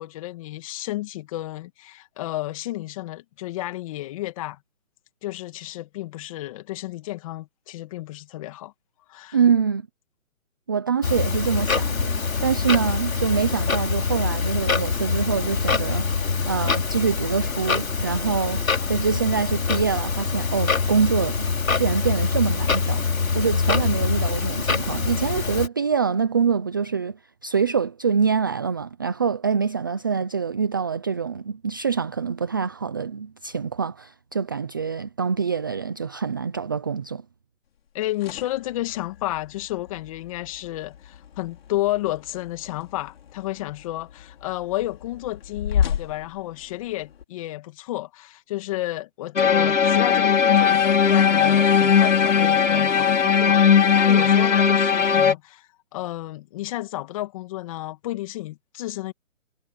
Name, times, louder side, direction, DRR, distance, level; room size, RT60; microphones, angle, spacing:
voice 1, 0.0-4.6 5.2-8.7 9.1-9.4 37.9-53.6 54.0-59.1, left 16 dB, 25° left, 2.4 m, -31 dB
voice 2, 9.3-9.9 10.7-18.6 18.9-23.0 23.3-37.2, right 6 dB, 15° right, 0.6 m, -25 dB
Clock, 11.0-25.7, left 4 dB, 85° left, 3.8 m, -24 dB
sound 1, 37.9-47.2, left 9 dB, 45° left, 5.2 m, -34 dB
sound 2, 49.4-55.3, left 7 dB, 65° left, 3.7 m, -18 dB
hypercardioid pair, 160°, 40 cm